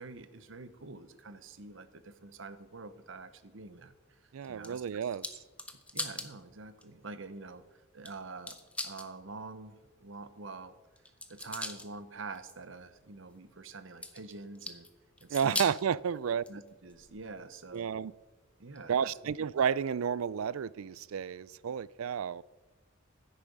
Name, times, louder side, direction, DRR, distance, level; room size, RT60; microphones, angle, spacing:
voice 1, 0.0-5.1 5.9-8.6 8.8-10.7 11.3-14.9 15.2-15.6 16.5-17.9 18.6-19.3, right 3 dB, 65° right, 1.0 m, -46 dB
voice 2, 4.3-5.3 15.3-16.4 17.7-18.1 18.9-22.4, right 7 dB, 85° right, 0.4 m, -31 dB
sound 1, 4.4-6.3 6.8-6.9 8.1-8.2 8.5-9.1 11.0-11.9 12.4-12.6 14.0-14.9 15.2-15.8 16.4-17.3 17.7-17.8 18.8-18.9, left 2 dB, 5° left, 0.9 m, -39 dB
15.0 x 8.7 x 5.4 m
head